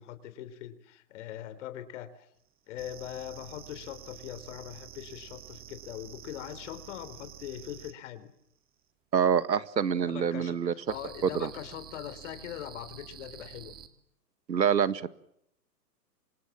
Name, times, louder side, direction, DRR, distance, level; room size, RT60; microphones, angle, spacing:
voice 1, 0.0-2.3 2.7-8.3 10.0-13.7, left 11 dB, 45° left, 13 dB, 3.7 m, -42 dB
sound 1, 2.8-7.9 10.9-13.9, right 10 dB, 20° right, 2.2 m, -48 dB
voice 2, 9.1-10.7 11.4-11.5 14.5-15.1, right 7 dB, 90° right, 15 dB, 2.0 m, -26 dB
28.5 x 26.0 x 7.4 m, 0.76 s
hypercardioid pair, 145°, 49 cm